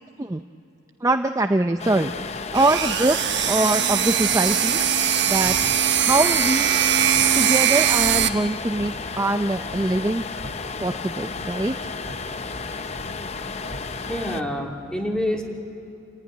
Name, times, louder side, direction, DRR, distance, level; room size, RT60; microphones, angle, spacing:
voice 1, 1.0-4.8 5.3-5.7 6.0-6.7 7.3-10.2 10.8-11.7, right 2 dB, 15° right, 7 dB, 0.5 m, -23 dB
sound 1, 1.8-14.4, left 4 dB, 30° left, 0.6 m, -33 dB
sound 2, 2.1-14.3, right 1 dB, 90° right, 2.5 m, -43 dB
sound 3, 2.5-8.3, right 10 dB, 60° right, 1.1 m, -21 dB
voice 2, 14.1-15.4, left 1 dB, 5° left, 0 dB, 2.8 m, -27 dB
28.5 x 16.0 x 9.8 m, 2.8 s
head